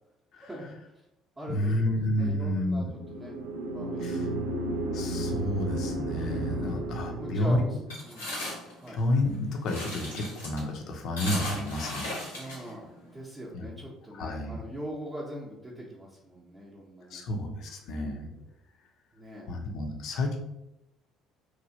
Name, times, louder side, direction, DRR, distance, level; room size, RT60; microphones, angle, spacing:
voice 1, 0.4-0.7 1.4-3.4 3.7-4.3 6.5-6.8 7.2-7.7 8.1-8.3 8.8-9.0 12.3-17.2 19.1-19.5, right 1 dB, 20° right, -4 dB, 0.7 m, -42 dB
voice 2, 1.5-2.9 4.0-4.3 4.9-7.8 8.9-12.1 12.4-12.7 13.5-13.7 14.1-14.6 17.1-18.3 19.5-20.4, left 1 dB, 55° left, 3 dB, 0.5 m, -30 dB
sound 1, 2.9-7.9, right 1 dB, 75° right, 0.3 m, -33 dB
sound 2, 7.9-13.2, left 1 dB, 85° left, 0.8 m, -37 dB
3.0 x 2.4 x 2.6 m, 0.88 s
figure-of-eight pair, 55°, 0 cm